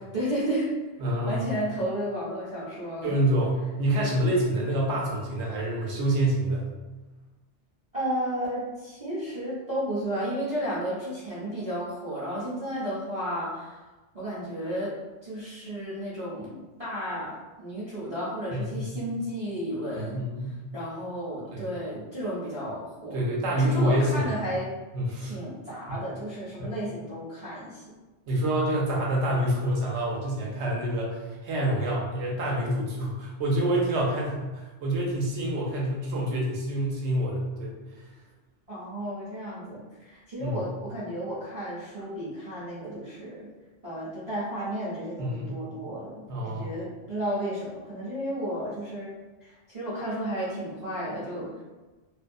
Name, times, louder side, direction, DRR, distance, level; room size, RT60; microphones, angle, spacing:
voice 1, 0.1-0.7 1.2-3.2 7.9-13.8 14.1-14.9 15.2-20.2 20.7-23.2 23.6-24.7 25.2-27.8 38.7-43.5 43.8-49.1 49.4-51.5, equal, 40° right, -10 dB, 0.6 m, -33 dB
voice 2, 1.0-1.5 3.0-6.7 18.5-19.0 19.9-20.6 21.5-21.7 23.1-24.2 24.9-25.4 25.9-26.0 26.6-26.7 28.3-37.8 40.4-40.6 45.2-45.6 46.3-46.7, right 1 dB, 70° right, -3 dB, 1.0 m, -27 dB
2.5 x 2.3 x 2.5 m, 1.2 s
omnidirectional pair, 1.2 m